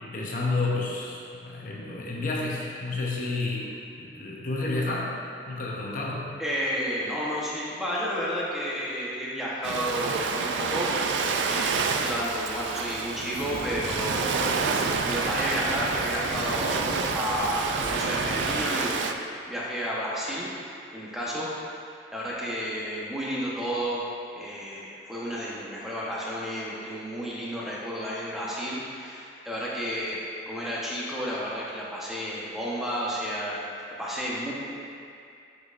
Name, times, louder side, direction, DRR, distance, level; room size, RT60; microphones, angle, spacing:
voice 1, 0.0-3.7 4.0-5.1 5.5-6.3, left 3 dB, 45° left, -4 dB, 0.8 m, -30 dB
voice 2, 6.4-14.6 15.0-19.1 19.5-20.5 20.9-21.5 22.1-24.0 24.3-30.2 30.5-33.6 34.0-34.5, equal, ahead, -7 dB, 1.0 m, -31 dB
Ocean, 9.6-19.1, right 4 dB, 80° right, 0.4 m, -28 dB
sound 1, 13.3-18.6, right 1 dB, 50° right, 0.9 m, -36 dB
7.8 x 6.3 x 2.5 m, 2.5 s
head